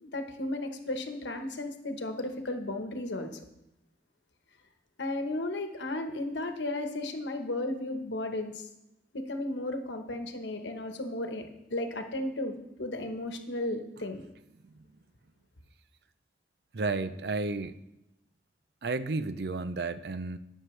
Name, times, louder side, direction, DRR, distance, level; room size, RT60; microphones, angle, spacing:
voice 1, 0.0-3.4 5.0-8.7 9.1-12.5 12.8-14.2, left 2 dB, 85° left, 6 dB, 1.1 m, -34 dB
voice 2, 16.7-17.8 18.8-20.4, right 3 dB, 65° right, 13 dB, 0.5 m, -32 dB
18.5 x 6.4 x 3.2 m, 0.87 s
head